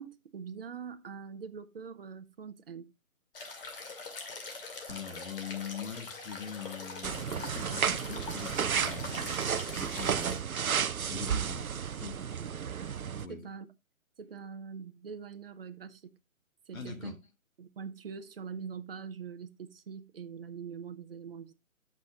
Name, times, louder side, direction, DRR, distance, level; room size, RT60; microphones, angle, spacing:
voice 1, 0.0-2.9 13.3-13.7 14.2-16.2 16.7-17.1 17.6-21.5, right 6 dB, 45° right, 0.9 m, -43 dB
sound 1, 3.3-10.4, left 3 dB, 40° left, 2.4 m, -43 dB
voice 2, 4.9-10.4 11.1-11.7 12.0-12.2 13.2-13.5 16.7-17.2, left 7 dB, 75° left, 2.0 m, -43 dB
sound 2, 7.0-13.3, right 7 dB, 85° right, 0.6 m, -32 dB
13.5 x 6.2 x 2.4 m
figure-of-eight pair, 150°, 41 cm